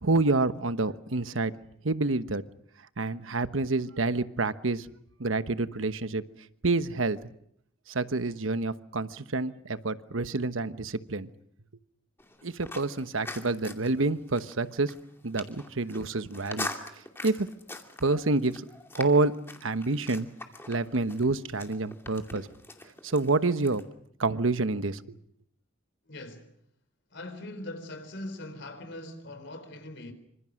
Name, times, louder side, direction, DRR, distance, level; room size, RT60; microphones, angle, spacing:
voice 1, 0.0-1.5 1.8-2.4 3.0-4.9 5.2-6.2 6.6-7.2 7.9-11.3 12.4-14.9 15.2-16.7 17.2-17.5 18.0-18.6 18.9-19.3 19.6-20.3 20.7-22.5 23.0-23.8 24.2-25.2, right 3 dB, 85° right, 1.2 m, -28 dB
sound 1, 12.2-23.8, left 2 dB, 10° left, 2.5 m, -43 dB
voice 2, 26.1-26.5 27.1-30.1, left 1 dB, 60° left, 4.1 m, -41 dB
27.0 x 26.0 x 6.4 m
head